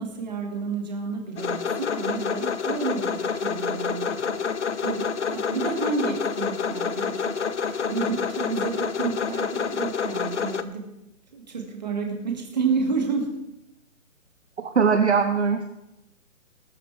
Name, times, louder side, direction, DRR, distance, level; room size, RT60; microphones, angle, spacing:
voice 1, 0.0-4.3 4.8-10.9 11.3-13.3, right 5 dB, 30° right, 2 dB, 2.1 m, -30 dB
sound 1, 1.4-10.6, left 6 dB, 55° left, 0.8 m, -28 dB
voice 2, 14.6-15.6, right 6 dB, 50° right, 5 dB, 1.0 m, -21 dB
19.5 x 9.6 x 3.4 m, 0.89 s
hypercardioid pair, 180°, 42 cm